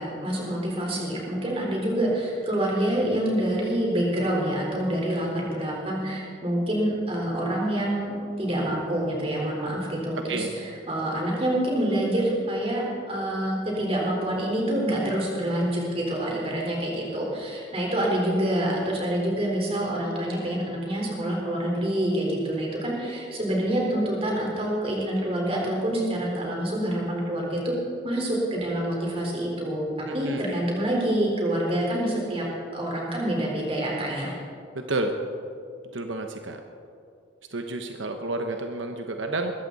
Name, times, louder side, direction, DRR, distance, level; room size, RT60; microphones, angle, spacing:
voice 1, 0.0-27.8 28.0-32.5 32.7-34.3, right 1 dB, 30° right, -2 dB, 4.2 m, -27 dB
voice 2, 30.1-30.4 34.7-35.1 35.9-36.6 37.5-39.5, right 2 dB, 85° right, 5 dB, 1.0 m, -30 dB
21.5 x 14.5 x 4.1 m, 2.5 s
head